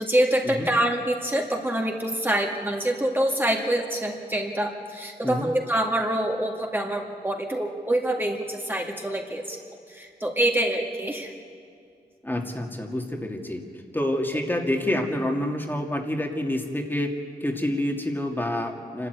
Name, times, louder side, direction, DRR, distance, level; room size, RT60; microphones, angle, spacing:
voice 1, 0.0-9.6 9.9-11.3, right 1 dB, 10° right, 0 dB, 1.9 m, -26 dB
voice 2, 12.2-13.6 13.9-17.1 17.4-19.1, left 1 dB, 10° left, 2 dB, 2.2 m, -27 dB
27.5 x 12.5 x 9.4 m, 2.3 s
wide cardioid pair, 95°, 17 cm